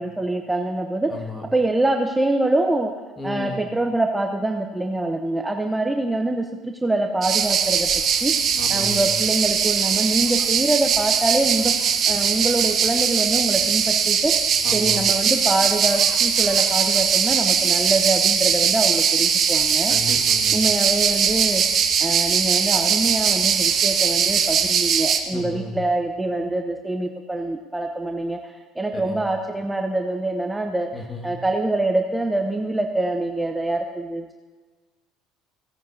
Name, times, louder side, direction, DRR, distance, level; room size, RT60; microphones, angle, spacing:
voice 1, 0.0-1.2 1.5-2.9 3.2-7.9 8.2-11.7 12.1-14.3 14.7-19.9 20.5-21.6 22.0-30.9 31.2-34.4, right 2 dB, 10° right, 4 dB, 0.8 m, -25 dB
voice 2, 1.1-1.5 3.2-3.6 8.6-9.1 14.6-15.0 19.9-20.6 25.3-25.8 28.9-29.2 30.9-31.3, left 2 dB, 20° left, 2 dB, 1.9 m, -33 dB
sound 1, 7.2-25.2, right 7 dB, 45° right, 1.0 m, -20 dB
16.5 x 9.4 x 2.7 m, 1.3 s
hypercardioid pair, 70°, 0 cm